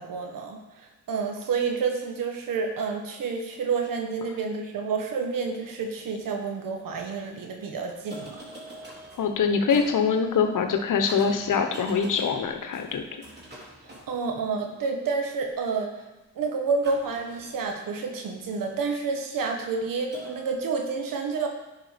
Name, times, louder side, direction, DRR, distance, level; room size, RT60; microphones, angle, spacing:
voice 1, 0.0-8.4 14.1-15.9 16.3-21.5, right 5 dB, 85° right, 3 dB, 1.3 m, -29 dB
sound 1, 5.9-6.0 6.7-7.0 7.9-14.8 16.8-18.8 20.1-20.6, right 1 dB, 30° right, 3.4 m, -45 dB
voice 2, 9.2-13.1, left 6 dB, 70° left, 6 dB, 1.1 m, -24 dB
10.5 x 4.9 x 5.1 m, 1.0 s
supercardioid pair, 45°, 33 cm